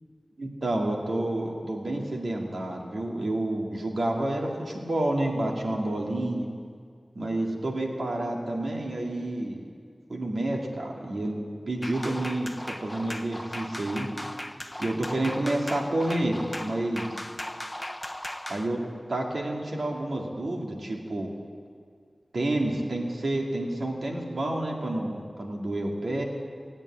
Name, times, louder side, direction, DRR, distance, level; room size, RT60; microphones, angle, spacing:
voice 1, 0.4-6.5 7.2-9.6 10.1-11.4 11.7-12.5 12.8-14.1 14.8-17.1 18.5-18.8 19.1-21.3 22.3-26.2, right 1 dB, 70° right, 0 dB, 2.2 m, -29 dB
sound 1, 11.8-18.7, left 1 dB, 10° left, 0.9 m, -38 dB
17.0 x 8.9 x 8.6 m, 2.1 s
wide cardioid pair, 55°, 0 cm